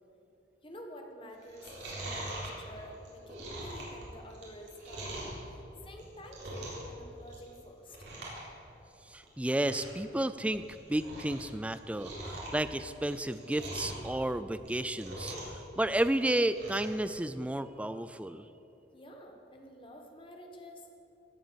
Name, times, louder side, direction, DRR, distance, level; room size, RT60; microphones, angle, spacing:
voice 1, 0.6-5.6 5.8-8.1 18.9-20.9, equal, 30° left, 2 dB, 1.5 m, -49 dB
Chewing mastication, 1.4-5.4 5.9-6.9 7.2-7.6 7.9-8.4 8.7-8.8 9.2-9.3 9.5-10.0 10.4-11.4 11.7-14.1 14.5-15.6 15.9-16.9 17.3-17.4, right 1 dB, 75° right, 3.8 m, -42 dB
voice 2, 9.1-10.6 10.9-18.5, right 1 dB, 5° right, 12 dB, 0.3 m, -32 dB
16.0 x 7.8 x 7.0 m, 3.0 s
head